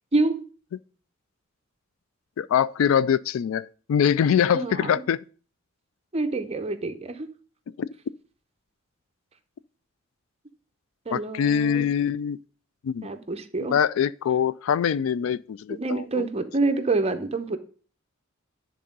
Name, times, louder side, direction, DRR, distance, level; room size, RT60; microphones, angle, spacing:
voice 1, 0.1-0.4 4.5-5.0 6.1-7.3 11.1-11.8 13.0-13.7 15.7-17.6, right 3 dB, 30° right, 0.7 m, -27 dB
voice 2, 2.4-5.2 7.8-7.9 11.1-12.4 12.8-13.1 13.7-16.2, left 8 dB, 80° left, 0.3 m, -23 dB
10.0 x 3.7 x 5.2 m
head